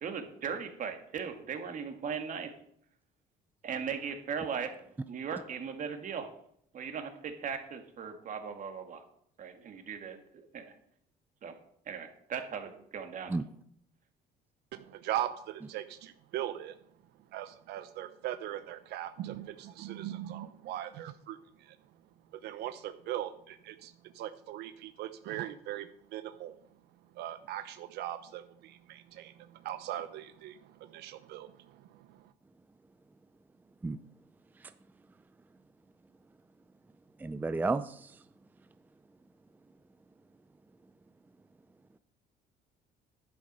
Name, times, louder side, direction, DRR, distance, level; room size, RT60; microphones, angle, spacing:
voice 1, 0.0-2.5 3.6-4.7 5.1-6.3 6.7-9.0 9.4-10.7 11.4-11.5 11.9-13.3, right 6 dB, 50° right, 6 dB, 1.9 m, -38 dB
voice 2, 14.7-16.8 17.3-21.8 22.3-26.6 27.2-32.3, right 12 dB, 80° right, 11 dB, 0.7 m, -40 dB
voice 3, 37.2-38.1, right 3 dB, 10° right, 12 dB, 0.4 m, -32 dB
11.0 x 7.8 x 5.4 m, 0.68 s
cardioid pair, 110°, 17 cm